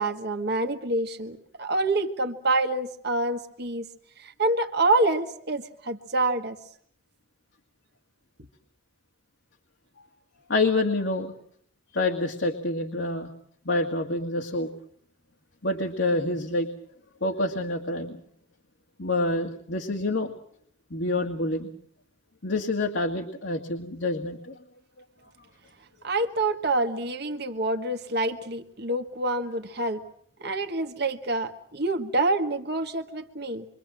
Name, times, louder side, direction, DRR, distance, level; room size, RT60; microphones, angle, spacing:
voice 1, 0.0-3.8 4.2-6.6 26.0-30.0 30.4-33.7, right 2 dB, 60° right, 6 dB, 1.5 m, -27 dB
voice 2, 10.5-11.3 11.9-13.3 13.7-14.7 15.6-16.7 17.2-18.2 19.0-20.3 20.9-21.7 22.4-24.6, left 2 dB, 75° left, 2 dB, 2.1 m, -27 dB
27.0 x 24.0 x 7.6 m, 0.66 s
head